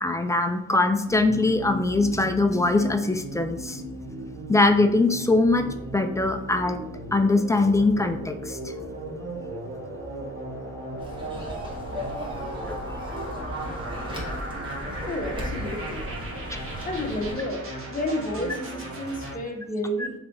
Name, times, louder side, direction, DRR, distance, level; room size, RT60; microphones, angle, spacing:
voice 1, 0.0-3.8 4.5-5.7 5.9-6.8 7.1-8.7 12.6-12.8 20.0-20.1, left 2 dB, 10° left, 6 dB, 0.4 m, -22 dB
sound 1, 1.1-19.4, right 1 dB, 45° right, 1.3 m, -36 dB
sound 2, 11.0-17.3, equal, 15° right, 1.2 m, -36 dB
voice 2, 15.1-16.0 16.8-17.6 17.9-20.2, left 1 dB, 25° left, 1 dB, 1.1 m, -30 dB
3.5 x 3.3 x 4.0 m, 0.81 s
cardioid pair, 90°, 30 cm